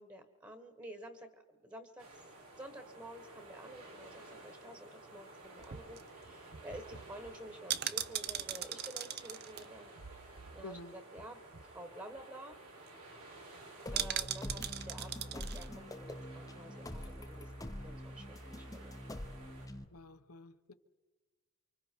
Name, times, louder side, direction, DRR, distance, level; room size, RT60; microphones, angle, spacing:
voice 1, 0.0-2.2 2.6-10.2 10.5-12.6 13.9-18.9, right 1 dB, 20° right, 6 dB, 1.5 m, -51 dB
sound 1, 2.0-19.7, right 2 dB, 90° right, 5.9 m, -54 dB
sound 2, 5.4-10.9 11.2-11.3 11.5-11.8 12.2-12.3 12.5-12.9 13.9-15.7 16.0-16.1, right 10 dB, 45° right, 0.7 m, -40 dB
voice 2, 10.6-10.9 19.9-20.7, left 3 dB, 85° left, 9 dB, 1.2 m, -50 dB
sound 3, 13.9-19.8, left 1 dB, 15° left, 0.8 m, -45 dB
29.0 x 25.0 x 4.6 m, 1.2 s
head